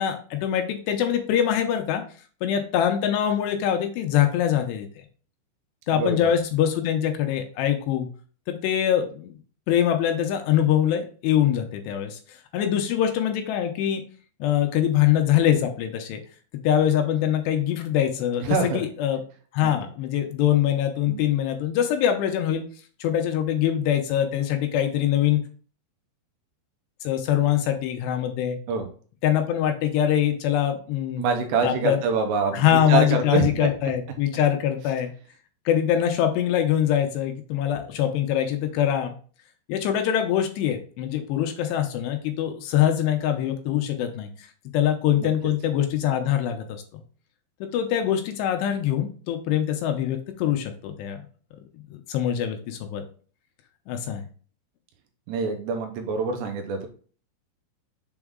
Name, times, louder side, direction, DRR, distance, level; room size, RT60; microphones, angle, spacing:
voice 1, 0.0-2.0 2.4-4.9 5.9-8.1 8.5-9.3 9.7-12.2 12.5-14.0 14.4-16.2 16.6-19.2 19.5-22.6 23.0-25.4 27.0-28.6 29.2-31.2 31.6-32.0 32.5-35.1 35.7-39.1 39.7-44.3 44.7-46.7 47.6-51.2 51.9-53.0 53.9-54.2, left 10 dB, 80° left, 5 dB, 2.7 m, -23 dB
voice 2, 5.9-6.3 18.4-18.9 19.6-19.9 21.1-21.2 28.7-28.9 31.2-33.7 43.7-43.8 45.2-45.3 55.3-56.9, right 4 dB, 80° right, 5 dB, 3.0 m, -26 dB
7.1 x 3.8 x 3.6 m, 0.41 s
omnidirectional pair, 5.2 m